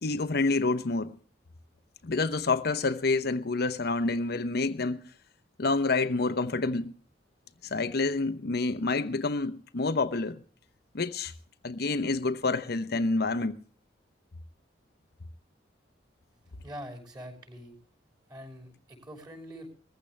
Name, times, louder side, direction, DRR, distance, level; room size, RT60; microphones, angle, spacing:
voice 1, 0.0-1.1 2.0-5.0 5.6-6.9 7.6-10.4 10.9-11.3 11.6-13.6, left 3 dB, 60° left, 0.8 m, -28 dB
voice 2, 16.6-17.8 18.3-19.7, equal, 25° right, 6.0 m, -44 dB
21.0 x 15.0 x 3.3 m
head